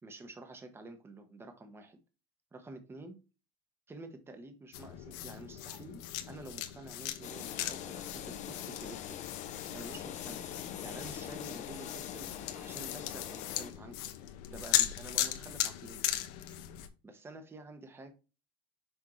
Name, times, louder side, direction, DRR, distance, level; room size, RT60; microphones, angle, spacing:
voice 1, 0.0-2.0 2.5-3.2 3.9-9.2 9.6-10.5 10.8-12.3 12.5-14.1 14.5-16.0 17.0-18.1, right 2 dB, 10° right, 0.9 m, -49 dB
sound 1, 4.7-16.9, left 12 dB, 75° left, 1.0 m, -38 dB
sound 2, 7.2-13.7, left 10 dB, 35° left, 0.7 m, -43 dB
6.3 x 5.2 x 3.0 m
cardioid pair, 160°, 20 cm